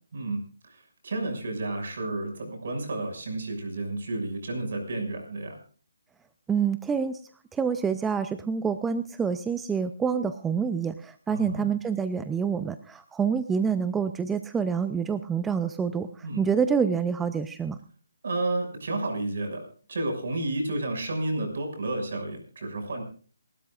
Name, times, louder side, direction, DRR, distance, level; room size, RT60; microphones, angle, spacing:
voice 1, 0.1-5.6 11.3-11.7 16.2-16.4 18.2-23.0, right 2 dB, 60° right, 4 dB, 6.3 m, -31 dB
voice 2, 6.5-7.2 7.5-17.8, right 6 dB, 5° right, 11 dB, 0.5 m, -27 dB
27.5 x 13.0 x 2.5 m, 0.41 s
hypercardioid pair, 160°, 0 cm